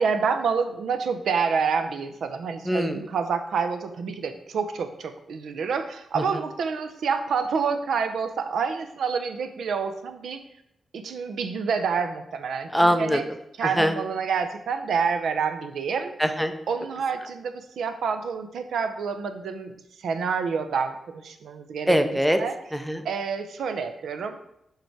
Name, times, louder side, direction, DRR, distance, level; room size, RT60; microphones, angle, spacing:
voice 1, 0.0-10.4 10.9-13.2 13.6-16.1 16.7-19.8 20.0-22.0 22.4-22.5 23.0-24.4, right 5 dB, 75° right, 8 dB, 0.7 m, -28 dB
voice 2, 2.6-3.1 6.1-6.4 12.7-13.2 13.6-13.9 16.2-16.5 21.9-22.4 22.7-23.0, equal, ahead, 7 dB, 0.4 m, -23 dB
6.7 x 4.8 x 4.6 m, 0.80 s
wide cardioid pair, 170°, 0 cm